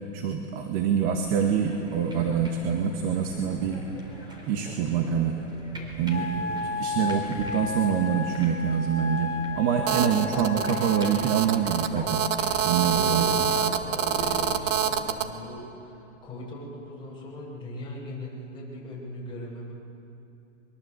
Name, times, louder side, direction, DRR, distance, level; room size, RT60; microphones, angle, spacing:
voice 1, 0.1-3.8 4.5-5.4 6.0-12.2 12.6-13.2, right 7 dB, 40° right, 4 dB, 2.1 m, -26 dB
sound 1, 1.2-14.5, equal, 10° right, 4.3 m, -43 dB
Wind instrument woodwind instrument, 6.1-11.3, left 3 dB, 70° left, 2.8 m, -33 dB
Telephone, 9.9-15.3, right 8 dB, 80° right, 2.2 m, -26 dB
voice 2, 10.1-10.4 12.9-19.7, left 1 dB, 10° left, -6 dB, 8.0 m, -39 dB
24.0 x 23.5 x 8.4 m, 2.9 s
hypercardioid pair, 145°, 38 cm